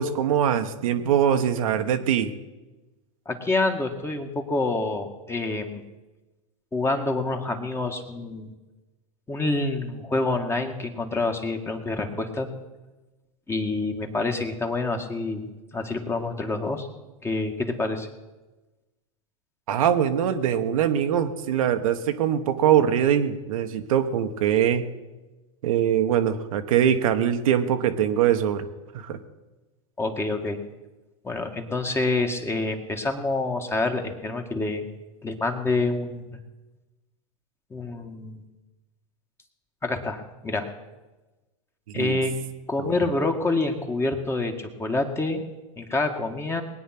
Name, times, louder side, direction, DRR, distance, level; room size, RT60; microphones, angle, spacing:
voice 1, 0.0-2.3 19.7-24.8 25.6-28.7 28.9-29.2 41.9-42.2 42.8-42.9, right 9 dB, 75° right, 6 dB, 1.3 m, -22 dB
voice 2, 3.3-5.8 6.7-8.5 9.3-12.5 13.5-16.9 17.2-18.1 30.0-30.6 31.2-34.8 35.2-36.3 37.7-38.4 39.8-40.7 41.9-42.4 42.7-45.4 45.8-46.6, left 2 dB, 15° left, 4 dB, 1.9 m, -27 dB
20.5 x 9.4 x 6.0 m, 1.1 s
hypercardioid pair, 105°, 18 cm